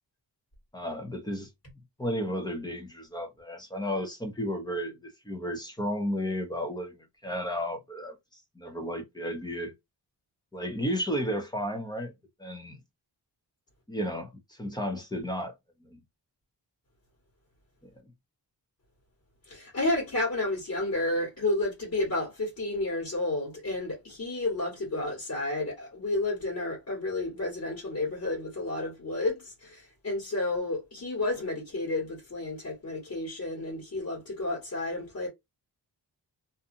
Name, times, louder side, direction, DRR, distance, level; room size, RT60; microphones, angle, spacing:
voice 1, 0.7-1.5 2.0-9.7 10.5-12.1 12.4-12.8 13.9-15.5 15.8-16.0, equal, 10° left, 0.7 m, -33 dB
voice 2, 19.5-35.3, left 2 dB, 40° left, 1.4 m, -31 dB
2.7 x 2.4 x 2.5 m
wide cardioid pair, 165°, 42 cm